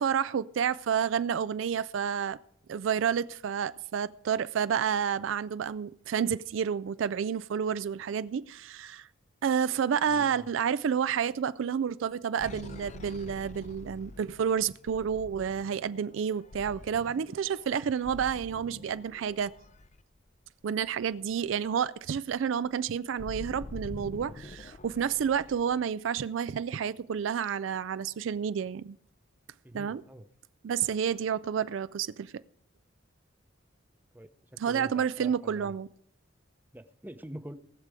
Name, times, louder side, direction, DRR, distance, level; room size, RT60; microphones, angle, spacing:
voice 1, 0.0-2.4 2.7-9.1 9.4-19.5 20.6-29.0 29.7-30.0 30.6-32.3 34.6-35.9, right 7 dB, 70° right, 0.4 m, -30 dB
voice 2, 10.1-10.5 29.6-30.3 34.1-35.8 36.7-37.5, right 1 dB, 10° right, 0.7 m, -45 dB
sound 1, 12.4-20.8 21.2-21.4 21.6-25.8, left 2 dB, 35° left, 0.5 m, -46 dB
19.0 x 6.7 x 4.9 m
head